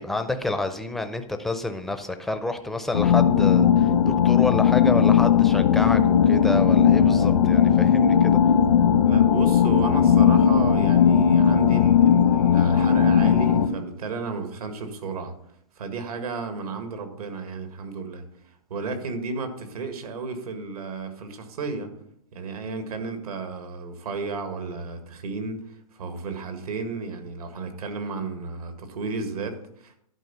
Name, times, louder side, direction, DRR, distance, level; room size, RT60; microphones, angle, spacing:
voice 1, 0.0-8.5, left 2 dB, ahead, 8 dB, 0.4 m, -29 dB
sound 1, 2.9-13.7, left 8 dB, 85° left, 1.1 m, -18 dB
voice 2, 9.0-15.3 15.8-21.9 22.3-30.0, right 4 dB, 75° right, 7 dB, 1.7 m, -33 dB
11.0 x 4.6 x 5.4 m, 0.73 s
hypercardioid pair, 145°, 19 cm